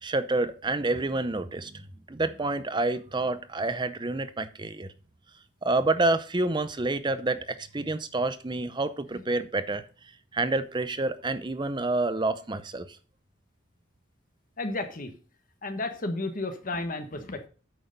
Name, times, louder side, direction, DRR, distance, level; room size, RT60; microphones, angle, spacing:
voice 1, 0.0-4.9 5.6-9.8 10.3-12.9, right 2 dB, 25° right, 12 dB, 0.6 m, -28 dB
voice 2, 14.6-15.1 15.6-17.5, left 2 dB, 45° left, 7 dB, 1.2 m, -32 dB
8.9 x 6.5 x 5.3 m, 0.37 s
head